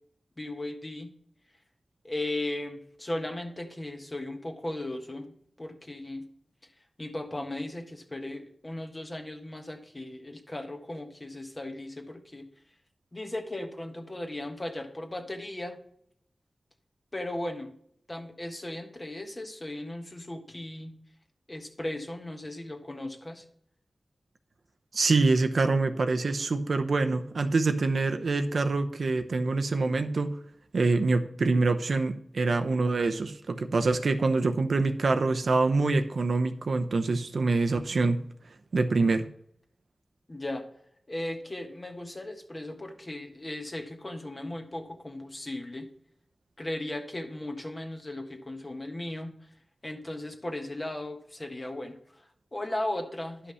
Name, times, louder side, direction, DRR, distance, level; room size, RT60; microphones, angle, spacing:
voice 1, 0.4-1.1 2.0-6.2 7.0-12.5 13.1-15.8 17.1-17.7 18.1-20.9 21.5-23.4 40.3-40.6 41.1-45.9 46.6-49.3 49.8-53.5, left 1 dB, 30° left, 4 dB, 1.4 m, -37 dB
voice 2, 24.9-30.4 30.7-38.2 38.7-39.2, right 3 dB, 75° right, 6 dB, 0.8 m, -25 dB
11.0 x 5.7 x 5.6 m, 0.69 s
wide cardioid pair, 90°, 0 cm